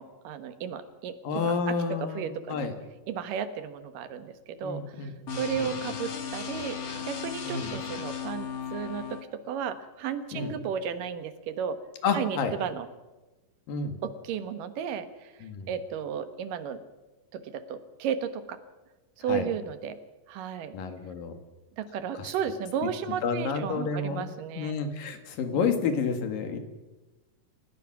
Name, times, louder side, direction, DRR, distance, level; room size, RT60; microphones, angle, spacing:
voice 1, 0.0-2.7 3.1-6.8 7.0-11.8 12.1-12.9 14.0-15.3 15.7-16.8 17.3-18.6 19.2-20.0 20.3-20.8 21.8-24.7 25.5-25.6, right 7 dB, 80° right, 10 dB, 2.9 m, -34 dB
voice 2, 1.3-2.7 4.6-5.7 7.5-7.8 10.3-10.5 12.0-12.6 13.7-13.9 15.4-15.7 19.3-19.5 20.7-21.4 23.2-24.3 24.6-26.6, left 5 dB, 90° left, 7 dB, 3.6 m, -30 dB
sound 1, 5.3-9.2, left 7 dB, 40° left, 1.3 m, -36 dB
29.5 x 15.5 x 6.1 m, 1.1 s
omnidirectional pair, 3.8 m